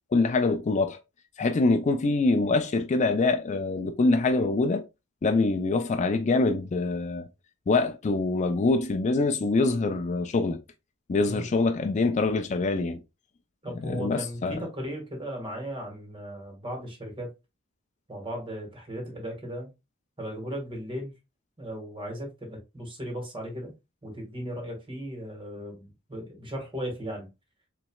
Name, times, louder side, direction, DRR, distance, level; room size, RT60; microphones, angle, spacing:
voice 1, 0.1-1.0 1.4-4.8 5.2-7.3 7.7-10.6 11.1-13.0 13.8-14.6, left 3 dB, 35° left, 0.4 m, -24 dB
voice 2, 13.6-17.3 18.1-19.7 20.2-21.1 21.6-23.7 24.0-27.3, equal, 25° right, 1.8 m, -36 dB
5.8 x 3.1 x 2.3 m
head